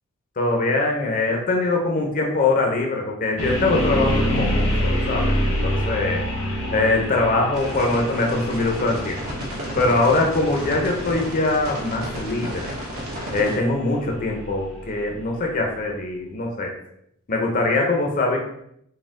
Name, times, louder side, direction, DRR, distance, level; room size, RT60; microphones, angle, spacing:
voice 1, 0.4-6.2 6.7-9.2 9.8-12.7 13.3-16.7 17.3-18.4, left 2 dB, 40° left, 0 dB, 0.5 m, -22 dB
sound 1, 3.4-15.3, equal, 85° left, 1.2 m, -27 dB
sound 2, 7.5-13.6, equal, 75° right, 1.2 m, -32 dB
4.1 x 2.1 x 3.6 m, 0.72 s
head